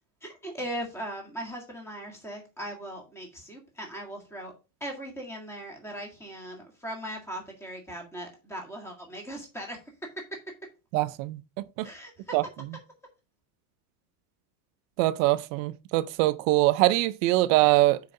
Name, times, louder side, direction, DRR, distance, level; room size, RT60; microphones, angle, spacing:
voice 1, 0.2-4.5 4.8-9.8 10.2-10.4 11.8-12.4, right 1 dB, 5° left, 1.8 m, -39 dB
voice 2, 10.9-11.9 12.3-12.4 15.0-18.0, right 18 dB, 55° right, 0.6 m, -23 dB
6.7 x 4.9 x 5.3 m
cardioid pair, 180°, 49 cm